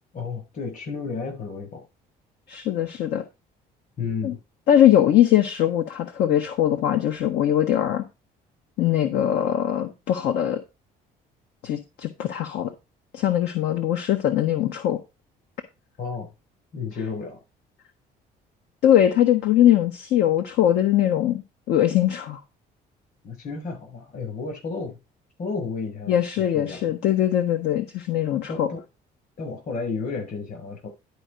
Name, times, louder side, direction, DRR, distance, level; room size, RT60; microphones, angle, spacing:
voice 1, 0.1-1.9 4.0-4.4 16.0-16.3 16.7-17.4 23.2-25.0 25.4-26.9 28.5-28.8 29.4-30.9, left 4 dB, 55° left, 6.8 m, -32 dB
voice 2, 2.5-3.2 4.2-4.3 4.7-8.0 8.8-10.6 11.6-12.7 13.1-15.0 18.8-21.4 21.7-22.4 26.1-28.7, left 11 dB, 75° left, 0.9 m, -21 dB
11.0 x 4.6 x 5.0 m
cardioid pair, 110°, 17 cm